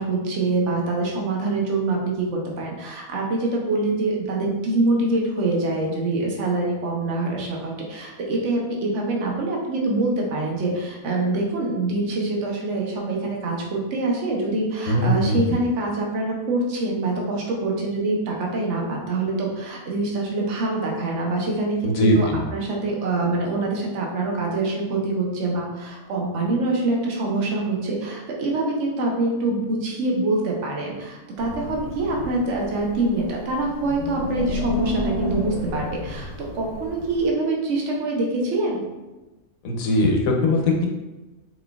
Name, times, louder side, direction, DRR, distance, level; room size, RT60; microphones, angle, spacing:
voice 1, 0.0-38.8, right 2 dB, 60° right, -1 dB, 1.1 m, -25 dB
voice 2, 14.9-15.4 21.8-22.4 39.6-40.9, left 1 dB, 85° left, 1 dB, 1.2 m, -20 dB
Wind, 31.4-37.3, left 2 dB, 60° left, 1.0 m, -31 dB
4.4 x 4.0 x 2.3 m, 1.1 s
omnidirectional pair, 1.4 m